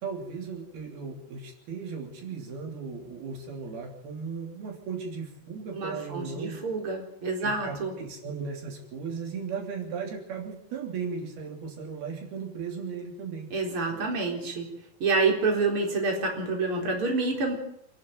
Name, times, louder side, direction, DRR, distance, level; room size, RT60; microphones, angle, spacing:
voice 1, 0.0-6.6 7.4-13.5, right 5 dB, 85° right, 1 dB, 5.0 m, -36 dB
voice 2, 5.7-7.9 13.5-14.7 15.0-17.5, right 3 dB, 35° right, 1 dB, 4.7 m, -27 dB
27.0 x 11.5 x 9.2 m, 0.75 s
omnidirectional pair, 4.3 m